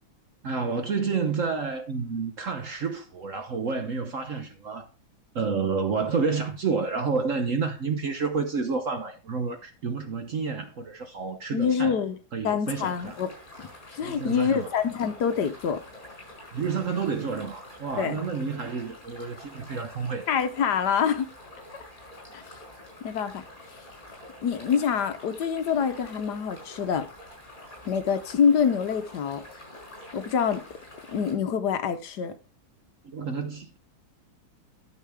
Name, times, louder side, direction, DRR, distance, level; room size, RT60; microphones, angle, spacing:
voice 1, 0.4-4.9 5.3-12.0 12.3-13.2 14.0-14.7 16.5-20.3 33.0-33.8, right 5 dB, 55° right, 1.0 m, -29 dB
voice 2, 11.5-12.2 12.4-13.3 13.6-15.8 18.0-18.2 20.3-21.3 21.7-21.9 22.3-22.4 23.0-23.4 24.4-27.1 27.8-29.4 30.1-30.6 31.1-32.3, left 7 dB, 65° left, 1.3 m, -26 dB
sound 1, 12.7-31.4, left 1 dB, 25° left, 6.4 m, -47 dB
12.0 x 6.5 x 3.4 m
omnidirectional pair, 2.1 m